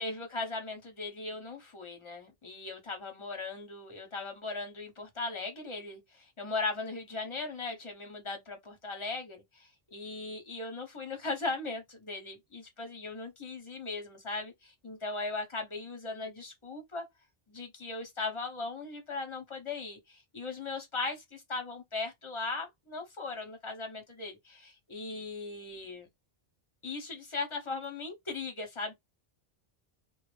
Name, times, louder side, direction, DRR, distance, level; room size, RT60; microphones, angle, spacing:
voice 1, 0.0-17.1 17.5-26.1 26.8-28.9, left 3 dB, 30° left, 0.8 m, -38 dB
2.0 x 2.0 x 3.1 m
omnidirectional pair, 1.1 m